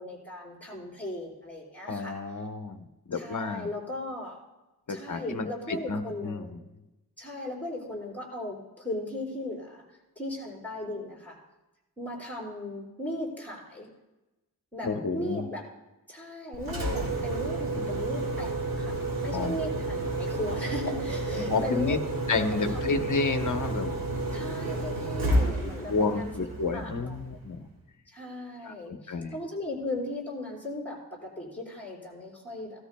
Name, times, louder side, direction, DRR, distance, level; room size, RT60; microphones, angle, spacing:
voice 1, 0.0-2.1 3.1-4.4 4.9-6.5 7.2-9.8 10.2-11.4 12.0-13.9 14.7-14.9 15.1-15.6 16.1-21.9 22.3-22.4 22.7-22.8 24.3-26.3 26.7-27.2 28.1-32.8, left 1 dB, 5° left, -3 dB, 4.7 m, -37 dB
voice 2, 1.9-3.7 4.9-6.6 14.8-15.5 17.7-17.9 19.3-19.5 21.3-22.0 22.3-24.0 25.9-27.7 28.6-29.4, left 3 dB, 55° left, 7 dB, 0.9 m, -31 dB
Engine, 16.5-27.5, right 2 dB, 65° right, 2.1 m, -31 dB
17.5 x 13.0 x 2.2 m, 1.0 s
wide cardioid pair, 105°, 37 cm